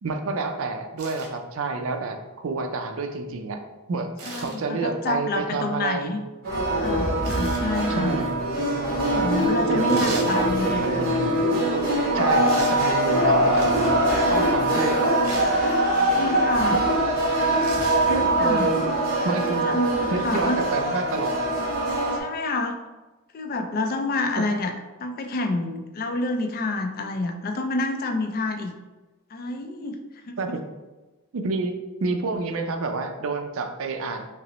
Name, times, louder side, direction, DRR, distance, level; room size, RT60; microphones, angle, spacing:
voice 1, 0.0-3.6 3.9-4.1 4.4-6.1 7.6-8.3 9.7-11.3 12.1-14.0 14.3-15.1 16.7-16.8 18.1-18.9 19.2-19.7 20.1-21.3 24.4-24.5 30.4-30.6 31.3-34.2, right 3 dB, 65° right, 5 dB, 0.4 m, -29 dB
sound 1, 1.0-1.3 4.2-4.6 7.2-7.7 9.9-10.3 12.5-12.8 13.6-14.0 15.2-15.6 17.6-18.1 19.5-19.6, right 3 dB, 85° right, 0.8 m, -37 dB
voice 2, 4.2-6.2 6.8-8.2 9.1-10.8 14.6-14.8 16.1-16.8 18.1-18.7 19.6-20.6 22.1-22.8 23.3-24.7 25.0-28.7 29.3-30.0 30.3-30.6, left 2 dB, 40° left, 5 dB, 0.4 m, -28 dB
sound 2, 6.4-22.2, right 1 dB, 45° right, 1.1 m, -23 dB
5.1 x 2.0 x 3.0 m, 1.2 s
head